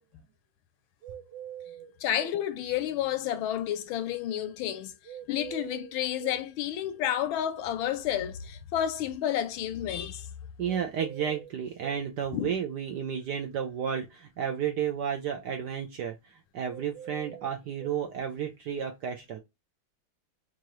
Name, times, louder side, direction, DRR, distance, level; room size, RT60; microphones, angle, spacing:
sound 1, 1.0-2.4 5.0-6.4 10.6-12.0 16.6-18.0, right 9 dB, 55° right, 1.6 m, -44 dB
voice 1, 2.0-4.9 5.3-10.3 12.3-12.5, left 11 dB, 75° left, 1.3 m, -30 dB
voice 2, 10.6-19.4, right 8 dB, 70° right, 1.0 m, -32 dB
4.7 x 2.6 x 2.9 m
omnidirectional pair, 2.4 m